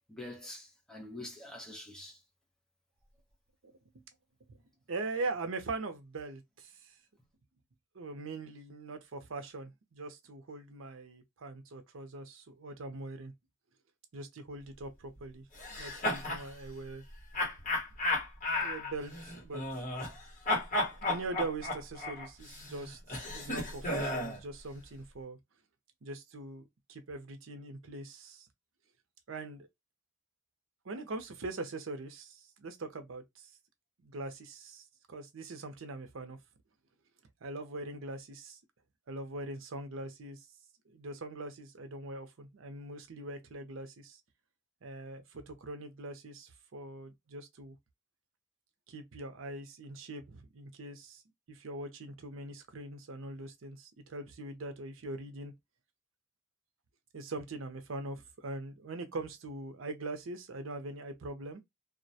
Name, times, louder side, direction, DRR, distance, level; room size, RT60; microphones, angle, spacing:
voice 1, 0.1-2.2, left 1 dB, 5° left, 0.6 m, -45 dB
voice 2, 3.6-4.0 4.5-4.6 4.9-6.9 7.9-13.3 14.1-15.4 15.7-17.0 18.6-19.6 21.0-25.4 26.0-28.5 29.3-29.7 30.8-33.5 34.0-36.4 37.4-38.6 39.1-40.5 40.9-44.2 44.8-47.8 48.9-51.2 51.5-55.5 57.1-61.6, right 2 dB, 75° right, 0.6 m, -42 dB
sound 1, 15.6-16.5 17.3-20.2 20.5-24.4, left 2 dB, 40° left, 1.1 m, -34 dB
2.4 x 2.1 x 2.7 m
head